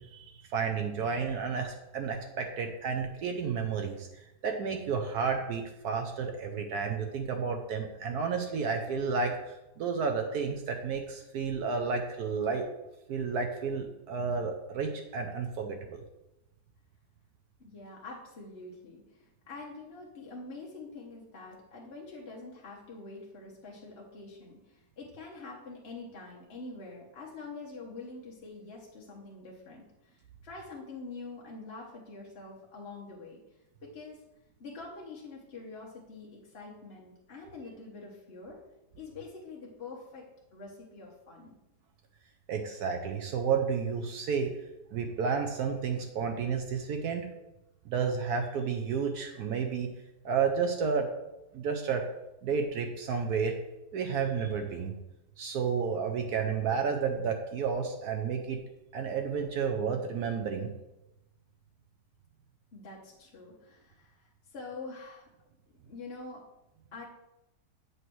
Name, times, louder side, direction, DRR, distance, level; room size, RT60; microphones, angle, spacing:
voice 1, 0.0-4.1 4.4-12.6 13.1-16.0 42.5-44.5 44.9-47.3 47.9-49.9 50.2-51.1 51.5-52.0 52.4-53.6 53.9-54.9 55.4-58.6 58.9-60.7, right 5 dB, 70° right, 4 dB, 1.1 m, -31 dB
voice 2, 17.6-33.4 33.8-34.2 34.6-38.6 39.0-40.3 40.5-41.6 62.7-65.3 65.8-66.5 66.9-67.0, left 3 dB, 45° left, -3 dB, 1.1 m, -45 dB
7.8 x 3.2 x 6.0 m, 0.94 s
omnidirectional pair, 1.8 m